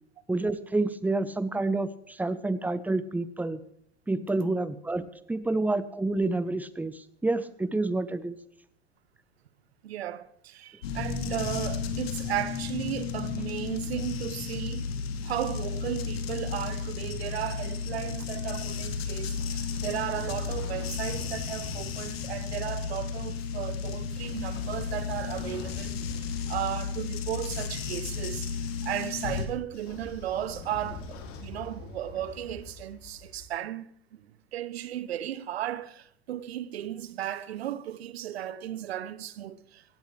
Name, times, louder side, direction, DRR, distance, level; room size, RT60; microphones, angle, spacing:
voice 1, 0.3-3.6 4.1-8.4, right 2 dB, 5° right, 0.8 m, -29 dB
voice 2, 9.8-14.9 15.2-28.5 28.8-39.8, right 12 dB, 75° right, 0.9 m, -35 dB
sound 1, 10.8-29.5, left 5 dB, 70° left, 2.2 m, -33 dB
Train / Sliding door, 19.0-23.0 23.9-28.7 29.6-33.4, left 4 dB, 45° left, 3.1 m, -45 dB
17.0 x 16.0 x 3.3 m
hypercardioid pair, 95°, 32 cm